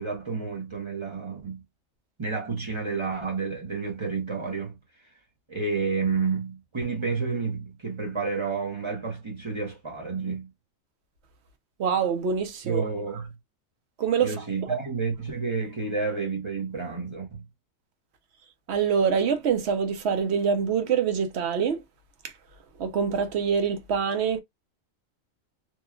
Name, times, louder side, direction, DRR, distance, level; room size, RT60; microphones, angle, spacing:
voice 1, 0.0-1.6 2.2-4.8 5.5-10.5 12.6-13.3 14.2-17.4, right 4 dB, 30° right, 0.6 m, -30 dB
voice 2, 11.8-12.8 14.0-14.4 18.7-21.8 22.2-22.3 22.8-24.4, right 6 dB, 60° right, 0.8 m, -25 dB
3.0 x 2.3 x 2.3 m
omnidirectional pair, 1.4 m